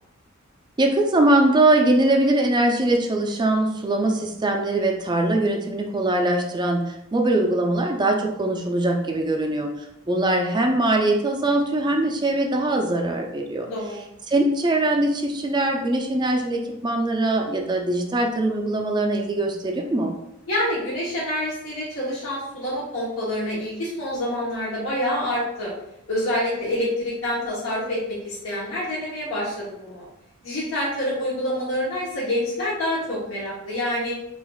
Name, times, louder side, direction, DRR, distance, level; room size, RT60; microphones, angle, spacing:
voice 1, 0.8-13.7 14.3-20.1, right 2 dB, 20° right, 2 dB, 0.4 m, -22 dB
voice 2, 13.6-14.1 20.5-25.7 26.1-30.1 30.4-34.2, left 1 dB, 70° left, -8 dB, 1.0 m, -27 dB
5.5 x 2.5 x 2.3 m, 0.84 s
head